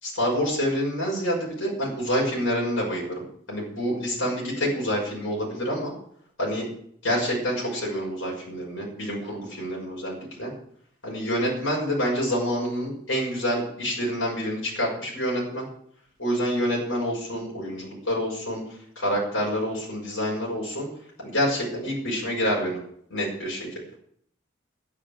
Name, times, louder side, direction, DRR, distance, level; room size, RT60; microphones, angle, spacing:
voice 1, 0.0-3.2 3.5-5.9 6.4-6.7 7.0-10.5 11.0-15.6 16.2-18.6 19.0-20.9 21.2-22.8 23.1-23.7, equal, 80° left, -3 dB, 6.2 m, -27 dB
12.0 x 10.0 x 6.8 m, 0.65 s
head